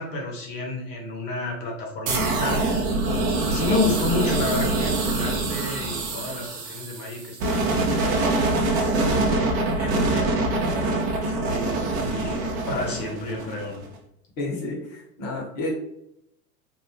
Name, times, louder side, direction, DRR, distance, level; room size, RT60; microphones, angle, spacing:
voice 1, 0.0-2.7 3.5-8.5 9.1-13.8, left 2 dB, 80° left, 0 dB, 1.1 m, -31 dB
sound 1, 2.1-13.8, right 2 dB, 50° right, 0.8 m, -24 dB
voice 2, 14.4-15.7, left 2 dB, 40° left, -1 dB, 1.2 m, -30 dB
2.7 x 2.1 x 2.7 m, 0.77 s
hypercardioid pair, 95°, 48 cm